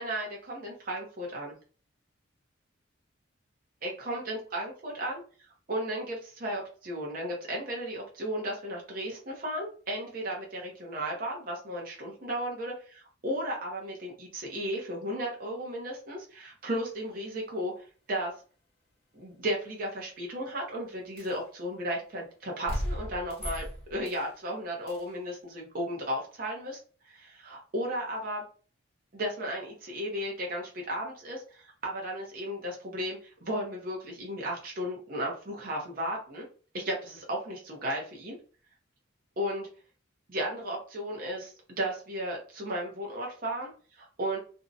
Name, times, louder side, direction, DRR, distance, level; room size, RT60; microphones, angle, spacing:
voice 1, 0.0-1.5 3.8-5.2 5.7-18.3 19.1-28.4 29.1-36.5 36.7-38.4 39.4-39.7 40.3-44.4, equal, 45° right, -2 dB, 0.7 m, -35 dB
sound 1, 21.2-21.4 22.7-24.3 24.9-25.1, equal, 30° left, 1.0 m, -36 dB
2.6 x 2.1 x 2.5 m, 0.39 s
head